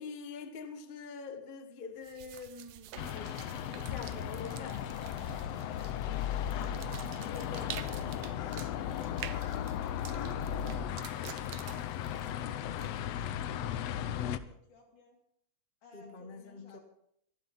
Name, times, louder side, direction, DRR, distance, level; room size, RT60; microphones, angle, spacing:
voice 1, 0.0-3.4 3.7-4.9 7.3-8.2 15.9-16.8, left 4 dB, 50° left, 0.6 m, -45 dB
sound 1, 2.0-13.2, right 11 dB, 70° right, 1.5 m, -49 dB
sound 2, 3.0-14.4, left 10 dB, 70° left, 1.6 m, -36 dB
voice 2, 6.4-11.9 12.2-15.2 15.8-16.8, left 3 dB, 85° left, 4.6 m, -59 dB
24.5 x 12.0 x 4.1 m
omnidirectional pair, 3.4 m